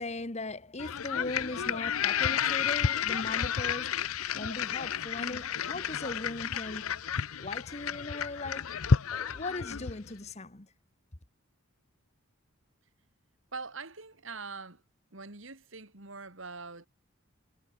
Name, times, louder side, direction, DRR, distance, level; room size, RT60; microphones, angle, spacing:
voice 1, 0.0-4.1 4.3-7.1 7.4-8.8 9.1-10.7, left 2 dB, 30° left, 1.6 m, -39 dB
sound 1, 0.8-10.1, left 7 dB, 80° left, 0.7 m, -31 dB
voice 2, 13.5-14.8 15.1-16.9, right 4 dB, 60° right, 2.9 m, -43 dB
head